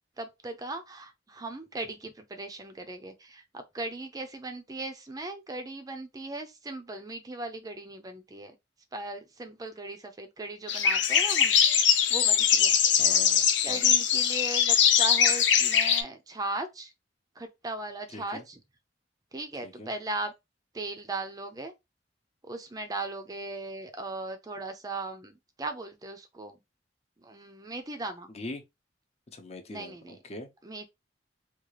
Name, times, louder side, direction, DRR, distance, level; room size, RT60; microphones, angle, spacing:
voice 1, 0.2-8.5 8.9-11.5 12.1-12.8 13.6-16.9 17.4-18.6 19.3-20.3 20.7-21.7 22.4-26.6 27.2-28.3 29.7-30.2 30.6-30.9, right 2 dB, 20° right, 0.5 m, -38 dB
sound 1, 10.7-16.0, left 8 dB, 80° left, 0.6 m, -22 dB
voice 2, 13.0-13.9 18.1-18.4 19.6-19.9 28.3-28.6 29.3-30.5, left 2 dB, 35° left, 0.7 m, -42 dB
3.6 x 2.4 x 3.2 m
head